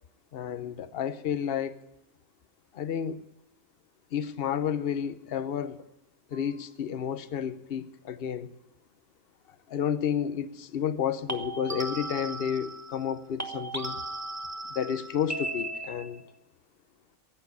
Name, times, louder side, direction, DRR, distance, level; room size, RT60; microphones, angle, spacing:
voice 1, 0.3-1.8 2.7-3.2 4.1-5.8 6.3-8.5 9.7-14.0 14.7-16.3, left 8 dB, 50° left, 1.0 m, -31 dB
sound 1, 6.3-6.6 11.3-13.1 13.4-16.3, right 2 dB, 15° right, 1.2 m, -37 dB
15.0 x 8.8 x 8.4 m
omnidirectional pair, 1.4 m